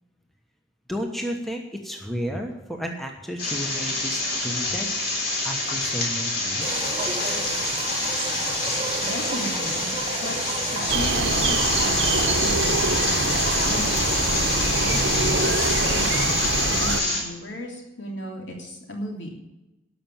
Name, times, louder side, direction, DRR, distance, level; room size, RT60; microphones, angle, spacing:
voice 1, 0.9-4.9 5.4-6.8, equal, ahead, 2 dB, 1.1 m, -32 dB
sound 1, 3.4-17.2, left 2 dB, 50° left, 3.6 m, -26 dB
sound 2, 6.6-16.3, right 3 dB, 25° right, 1.3 m, -32 dB
voice 2, 9.0-9.9 10.2-14.0 14.2-15.5 15.8-19.3, equal, 70° left, 0 dB, 3.2 m, -36 dB
sound 3, 10.9-17.0, right 3 dB, 60° right, 1.0 m, -25 dB
13.0 x 6.0 x 9.0 m, 0.98 s
head